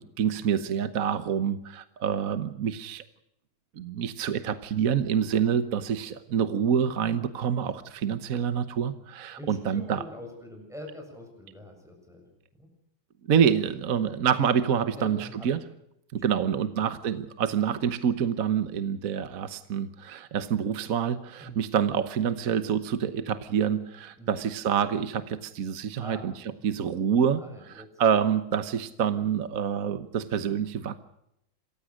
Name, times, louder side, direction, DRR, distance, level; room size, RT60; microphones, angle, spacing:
voice 1, 0.0-3.0 3.8-10.0 13.3-15.6 16.1-26.3 26.6-27.4 27.7-31.0, right 8 dB, 50° right, 11 dB, 1.3 m, -27 dB
voice 2, 9.4-12.2 12.6-12.7 13.9-14.0 14.9-15.6 16.2-16.8 21.4-21.6 24.2-24.3 26.0-26.3 27.4-28.0, equal, ahead, 2 dB, 7.4 m, -44 dB
27.0 x 16.0 x 6.5 m, 0.78 s
omnidirectional pair, 2.1 m